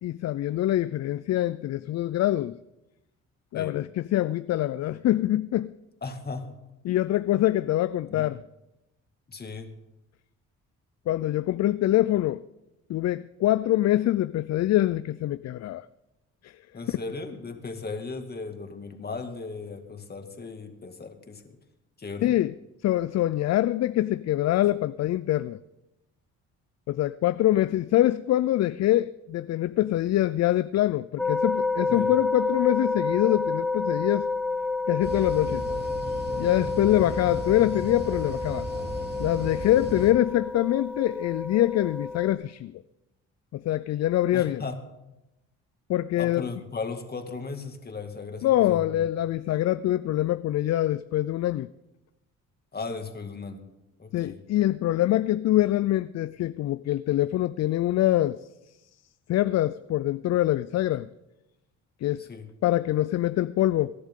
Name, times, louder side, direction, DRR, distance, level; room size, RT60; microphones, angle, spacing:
voice 1, 0.0-2.6 3.5-5.7 6.8-8.4 11.1-12.4 12.9-15.9 16.4-16.5 22.2-22.5 22.8-25.6 26.9-34.3 34.9-35.7 36.4-38.7 39.2-42.8 43.5-44.6 45.9-46.4 48.4-51.7 54.1-58.4 59.3-61.1 62.0-62.3 62.6-63.9, left 14 dB, 60° left, 0.5 m, -24 dB
voice 2, 6.0-6.5 8.1-8.3 9.3-9.7 16.7-21.6 22.0-22.3 31.9-32.1 39.7-39.8 44.3-44.8 46.2-49.0 52.7-53.6 54.0-54.4 62.2-62.5, left 4 dB, 30° left, 2.2 m, -37 dB
sound 1, 31.2-42.3, left 3 dB, 5° left, 1.1 m, -30 dB
sound 2, 35.0-40.1, right 2 dB, 35° right, 2.8 m, -36 dB
24.0 x 11.0 x 3.7 m
cardioid pair, 90°, 30 cm